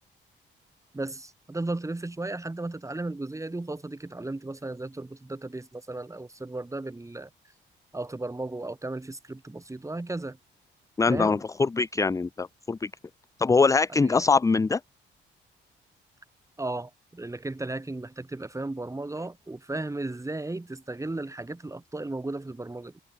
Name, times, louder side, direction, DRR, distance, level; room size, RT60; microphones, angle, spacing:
voice 1, 0.9-7.3 7.9-10.4 11.1-11.4 13.9-14.2 16.6-23.0, right 2 dB, 15° right, 7.6 m, -35 dB
voice 2, 11.0-12.9 13.4-14.8, left 4 dB, 15° left, 0.5 m, -23 dB
cardioid pair, 90°, 20 cm